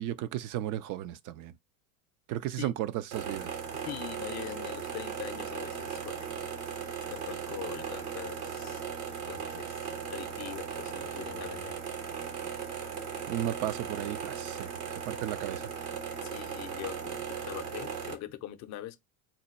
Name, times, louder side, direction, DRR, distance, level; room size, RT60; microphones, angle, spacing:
voice 1, 0.0-1.5 2.3-3.5 13.3-15.7, right 12 dB, 50° right, 0.5 m, -34 dB
sound 1, 3.1-18.1, right 7 dB, 75° right, 1.1 m, -37 dB
voice 2, 3.8-6.2 7.1-11.8 16.2-19.0, left 13 dB, 40° left, 0.6 m, -42 dB
4.0 x 2.2 x 4.1 m
supercardioid pair, 105°, 42 cm